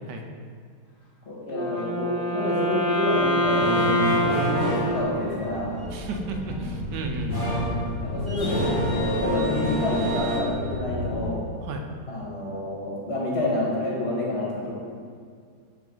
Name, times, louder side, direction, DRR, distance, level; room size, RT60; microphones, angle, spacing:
voice 1, 1.3-5.7 8.0-11.4 12.1-14.7, left 2 dB, 40° left, -6 dB, 1.7 m, -28 dB
Wind instrument woodwind instrument, 1.5-5.7, equal, 80° left, 0.4 m, -26 dB
sound 1, 3.1-10.4, right 1 dB, 15° left, 0.9 m, -29 dB
sound 2, 4.9-11.3, left 2 dB, 55° right, 1.1 m, -34 dB
voice 2, 5.9-7.5 11.6-11.8, right 2 dB, 85° right, 3 dB, 1.3 m, -33 dB
7.8 x 3.3 x 3.8 m, 2.1 s
omnidirectional pair, 1.8 m